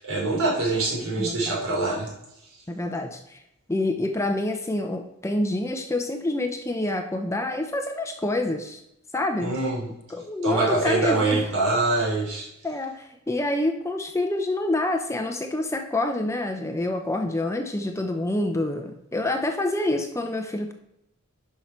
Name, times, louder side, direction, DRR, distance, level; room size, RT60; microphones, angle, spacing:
voice 1, 0.0-2.1 9.4-9.9 10.4-12.5, right 2 dB, 75° right, -4 dB, 3.8 m, -24 dB
voice 2, 1.2-1.6 2.7-3.4 3.7-8.8 9.1-9.6 10.1-11.4 12.6-20.7, left 2 dB, 15° left, 5 dB, 0.6 m, -27 dB
11.0 x 5.8 x 4.4 m, 0.83 s
head